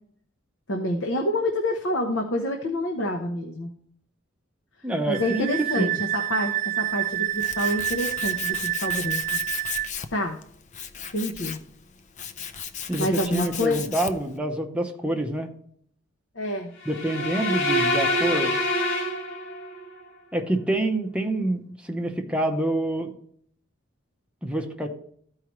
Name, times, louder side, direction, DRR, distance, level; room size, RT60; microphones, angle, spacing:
voice 1, 0.7-3.7 5.1-9.4 10.1-10.4 11.1-11.6 13.0-13.8 16.4-16.7, left 1 dB, 65° left, 3 dB, 0.9 m, -27 dB
voice 2, 4.8-6.0 12.9-15.5 16.8-18.6 20.3-23.1 24.4-24.9, right 1 dB, 5° right, 2 dB, 0.8 m, -27 dB
Wind instrument woodwind instrument, 5.1-9.9, right 14 dB, 40° right, 0.3 m, -28 dB
Tools, 6.9-14.3, left 8 dB, 35° left, 0.5 m, -36 dB
sound 1, 16.8-19.9, left 1 dB, 80° left, 1.7 m, -25 dB
13.5 x 4.8 x 3.1 m, 0.64 s
head